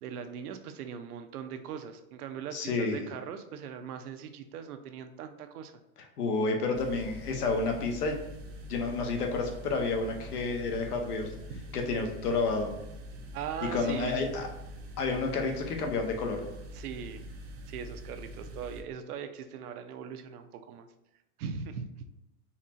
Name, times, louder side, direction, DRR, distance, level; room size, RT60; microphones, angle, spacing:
voice 1, 0.0-5.8 11.5-11.6 13.3-14.2 16.7-17.2 17.7-20.9 21.4-21.9, right 7 dB, 75° right, 8 dB, 0.6 m, -40 dB
voice 2, 2.5-3.0 6.2-8.2 8.7-11.3 11.7-12.7 13.7-14.5 15.0-16.4, left 3 dB, 90° left, 3 dB, 1.0 m, -30 dB
sound 1, 6.7-18.8, equal, 30° right, 0.4 m, -44 dB
4.2 x 2.9 x 2.5 m, 0.94 s
hypercardioid pair, 130°, 45 cm